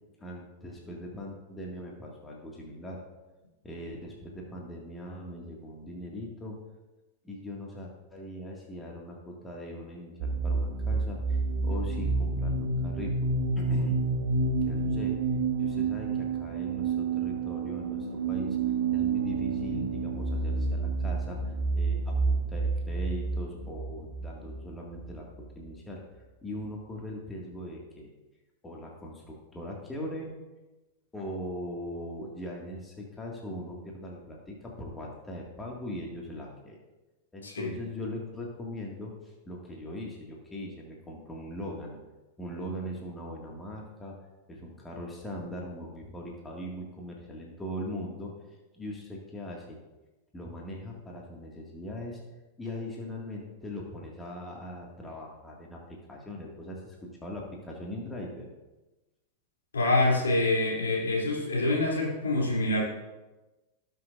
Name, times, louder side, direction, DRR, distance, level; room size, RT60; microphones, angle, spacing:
voice 1, 0.2-3.0 3.6-6.6 7.2-13.3 13.6-14.0 14.6-15.1 15.6-18.6 18.9-25.3 25.6-28.1 28.6-30.3 31.1-36.8 37.3-42.0 42.4-44.2 44.5-48.3 48.7-49.8 50.3-52.2 52.6-55.8 56.1-58.5, equal, 10° left, -2 dB, 2.0 m, -40 dB
sound 1, 10.2-25.7, right 4 dB, 60° right, 1.2 m, -29 dB
voice 2, 37.4-37.7 59.7-62.8, left 2 dB, 70° left, -3 dB, 2.9 m, -26 dB
18.0 x 6.6 x 2.6 m, 1.1 s
figure-of-eight pair, 90°, 0 cm